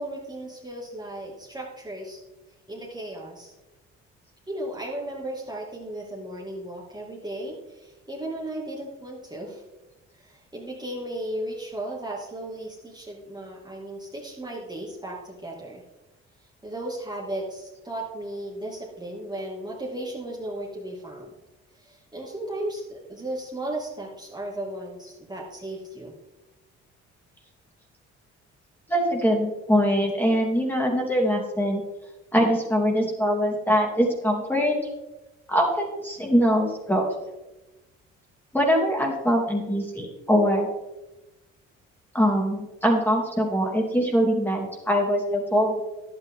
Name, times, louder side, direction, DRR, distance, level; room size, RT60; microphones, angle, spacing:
voice 1, 0.0-2.2 2.7-3.5 4.5-9.6 10.1-15.8 16.6-21.3 21.8-26.2, right 1 dB, 15° right, -4 dB, 2.2 m, -35 dB
voice 2, 28.9-31.8 32.3-34.8 35.5-37.1 38.5-40.7 42.1-45.8, equal, 5° left, -1 dB, 2.8 m, -23 dB
10.5 x 8.9 x 3.8 m, 1.1 s
supercardioid pair, 75°, 29 cm